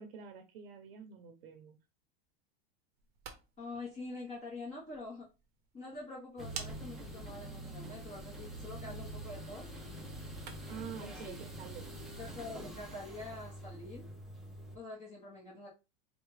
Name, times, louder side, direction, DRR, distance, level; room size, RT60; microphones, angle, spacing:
voice 1, 0.0-1.8 10.6-11.9, right 7 dB, 75° right, 6 dB, 0.8 m, -48 dB
sound 1, 2.9-10.9, right 7 dB, 35° right, 0.8 m, -53 dB
voice 2, 3.6-5.3 5.7-9.7 11.0-11.3 12.2-14.1 14.7-15.7, left 2 dB, 20° left, -4 dB, 1.1 m, -45 dB
sound 2, 6.4-14.8, right 1 dB, ahead, 0.7 m, -45 dB
4.5 x 2.3 x 3.2 m, 0.28 s
supercardioid pair, 150°, 30 cm